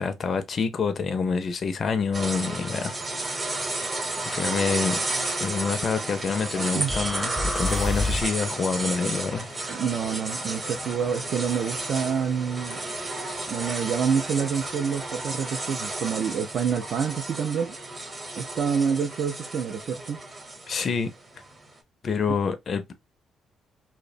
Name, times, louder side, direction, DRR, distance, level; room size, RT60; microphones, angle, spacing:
voice 1, 0.0-3.0 4.2-5.0 5.4-9.5 20.7-21.1 22.0-22.9, left 5 dB, 45° left, 0.4 m, -27 dB
sound 1, 2.1-21.7, right 2 dB, 30° right, 0.8 m, -32 dB
sound 2, 6.9-8.5, left 2 dB, 5° right, 0.5 m, -28 dB
voice 2, 9.7-12.8 13.5-17.7 18.4-20.2, right 7 dB, 60° right, 0.3 m, -27 dB
2.7 x 2.0 x 2.4 m
cardioid pair, 90°, 0 cm